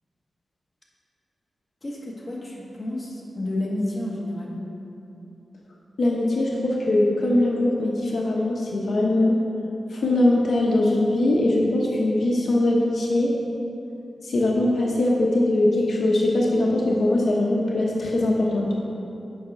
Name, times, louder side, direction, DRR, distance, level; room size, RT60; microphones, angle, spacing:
voice 1, 1.8-4.6, left 1 dB, 25° left, -3 dB, 1.4 m, -30 dB
voice 2, 6.0-9.4 9.9-13.3 14.2-18.7, left 1 dB, 65° left, -2 dB, 0.9 m, -21 dB
8.6 x 5.6 x 5.3 m, 2.8 s
wide cardioid pair, 105°, 0 cm